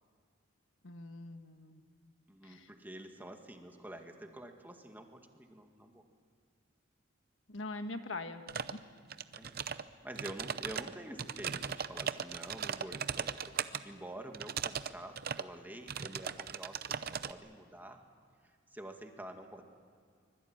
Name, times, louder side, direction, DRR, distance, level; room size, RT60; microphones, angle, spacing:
voice 1, 0.8-1.8 2.5-2.7 7.5-8.4 8.7-8.8, left 2 dB, 75° left, 7 dB, 1.5 m, -42 dB
voice 2, 2.3-6.0 9.4-9.6 10.0-18.0 18.7-19.6, right 1 dB, 10° right, 4 dB, 2.0 m, -48 dB
sound 1, 8.5-8.8 9.1-9.8 10.2-13.8 14.3-14.9 15.2-15.5 15.9-17.3, right 7 dB, 50° right, 0.7 m, -38 dB
24.5 x 21.0 x 9.0 m, 2.2 s
head